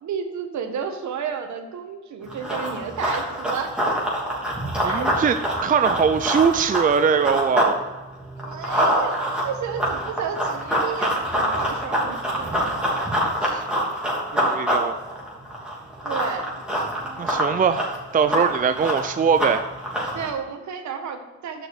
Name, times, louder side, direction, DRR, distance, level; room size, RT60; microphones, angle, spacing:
voice 1, 0.0-3.8 4.8-5.4 8.3-13.0 16.0-16.6 20.1-21.7, right 6 dB, 70° right, 6 dB, 1.4 m, -32 dB
Run, 2.3-7.7 8.1-20.3, equal, 5° right, 3.1 m, -25 dB
voice 2, 4.8-7.8 13.4-13.6 14.3-14.9 17.2-19.7, right 6 dB, 30° right, 9 dB, 0.5 m, -21 dB
6.5 x 6.2 x 7.1 m, 1.2 s
cardioid pair, 90°, 30 cm